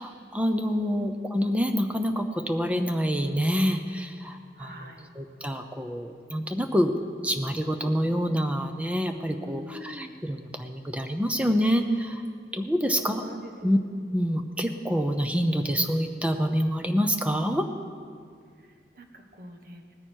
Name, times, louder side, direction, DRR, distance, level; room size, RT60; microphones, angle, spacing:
voice 1, 0.0-4.7 5.2-6.9 7.2-12.2 12.5-13.2 13.6-13.8 14.1-17.7, equal, 10° right, 5 dB, 0.7 m, -26 dB
voice 2, 0.9-1.3 4.6-5.1 9.4-10.1 12.9-13.9 18.6-19.9, equal, 50° right, 4 dB, 1.4 m, -46 dB
19.0 x 14.5 x 4.6 m, 2.1 s
head